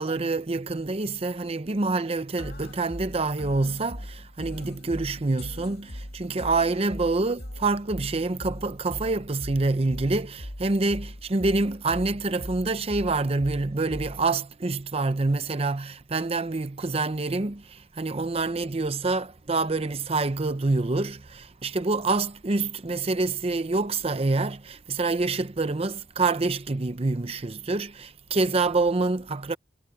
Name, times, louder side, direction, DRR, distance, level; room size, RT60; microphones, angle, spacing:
voice 1, 0.0-29.6, right 3 dB, 30° right, 0.7 m, -26 dB
sound 1, 2.4-14.4, equal, 55° left, 2.7 m, -40 dB
head